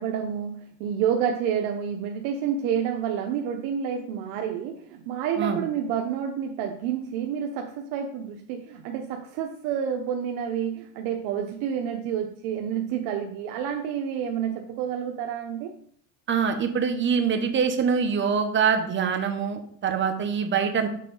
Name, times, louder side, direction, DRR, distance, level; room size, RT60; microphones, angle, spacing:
voice 1, 0.0-15.7, right 8 dB, 80° right, 3 dB, 0.9 m, -29 dB
voice 2, 16.3-20.9, right 6 dB, 30° right, 6 dB, 1.0 m, -24 dB
6.7 x 3.7 x 5.4 m, 0.62 s
cardioid pair, 125°, 39 cm